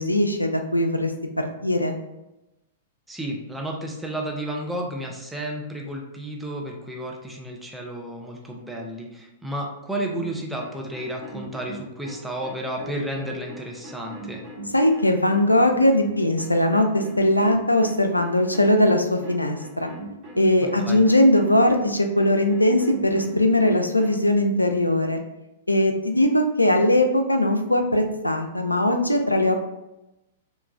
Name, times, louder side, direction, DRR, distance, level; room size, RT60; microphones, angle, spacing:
voice 1, 0.0-2.0 14.7-19.9 20.4-25.2 25.7-29.6, left 1 dB, 90° left, 5 dB, 0.3 m, -20 dB
voice 2, 3.1-14.4 20.6-21.0, right 1 dB, 5° right, -1 dB, 0.5 m, -32 dB
sound 1, 10.1-24.2, equal, 30° right, 0.9 m, -39 dB
2.9 x 2.2 x 2.4 m, 0.95 s
figure-of-eight pair, 105°, 0 cm